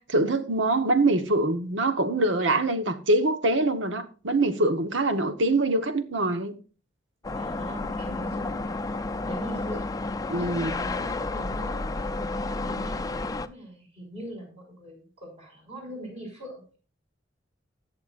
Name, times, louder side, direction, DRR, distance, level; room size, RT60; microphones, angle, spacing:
voice 1, 0.0-6.6 10.3-10.7, right 2 dB, 85° right, 1.1 m, -24 dB
sound 1, 7.2-13.5, left 2 dB, 20° left, 0.5 m, -31 dB
voice 2, 7.4-8.8 9.2-9.8 10.3-16.6, equal, 35° right, 5.7 m, -41 dB
20.0 x 7.0 x 2.5 m
head